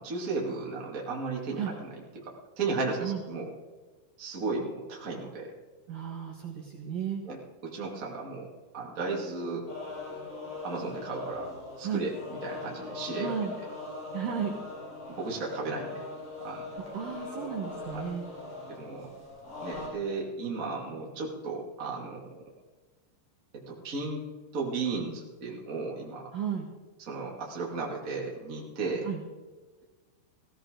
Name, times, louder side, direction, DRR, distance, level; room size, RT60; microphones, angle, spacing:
voice 1, 0.0-1.9 2.1-3.5 4.2-5.5 7.2-9.7 10.6-11.5 11.8-13.3 15.1-16.0 16.4-16.7 17.9-18.0 18.7-19.1 19.6-22.3 23.5-24.2 24.5-26.3 27.1-29.1, right 3 dB, 25° right, -3 dB, 2.1 m, -35 dB
voice 2, 5.9-7.2 11.8-12.1 13.1-13.5 14.1-14.6 16.7-18.2 26.3-26.7 29.0-29.2, right 8 dB, 60° right, -1 dB, 2.6 m, -34 dB
sound 1, 9.7-19.9, left 3 dB, 50° left, 5.2 m, -41 dB
17.0 x 16.5 x 3.8 m, 1.3 s
omnidirectional pair, 5.2 m